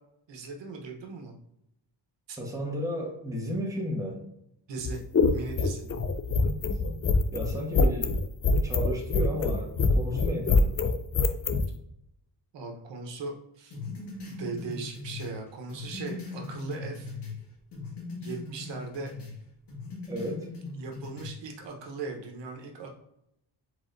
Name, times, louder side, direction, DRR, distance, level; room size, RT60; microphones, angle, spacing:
voice 1, 0.3-1.3 2.3-2.4 4.7-5.0 5.3-5.9 12.5-13.8 14.2-17.1 18.2-19.1 20.7-22.9, right 3 dB, 80° right, 2 dB, 1.1 m, -38 dB
voice 2, 2.4-4.2 6.6-7.0 7.3-8.2 8.6-10.6 20.1-20.5, equal, 5° right, -1 dB, 1.3 m, -33 dB
sound 1, 4.8-11.7, left 3 dB, 35° left, 0.4 m, -24 dB
sound 2, 13.7-17.4 17.7-19.4 19.7-21.3, left 3 dB, 70° left, 1.8 m, -39 dB
4.8 x 4.2 x 2.6 m, 0.78 s
cardioid pair, 105°, 43 cm